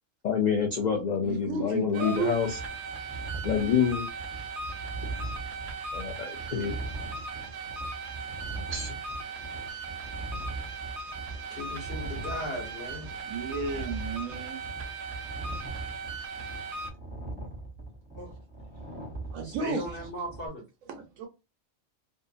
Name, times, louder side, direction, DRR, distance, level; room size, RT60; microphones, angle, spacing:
voice 1, 0.2-2.6 3.4-4.1 5.9-6.7 8.7-8.9, left 7 dB, 80° left, 0.3 m, -27 dB
voice 2, 1.2-2.3 13.2-14.6 19.3-20.1 20.9-21.3, right 5 dB, 90° right, 1.0 m, -33 dB
sound 1, 1.9-16.9, right 4 dB, 65° right, 0.8 m, -38 dB
sound 2, 2.3-20.5, right 2 dB, 10° right, 0.6 m, -41 dB
voice 3, 11.5-13.1 18.2-18.3 19.4-20.6, equal, 50° left, 1.0 m, -37 dB
2.6 x 2.4 x 2.4 m
omnidirectional pair, 1.4 m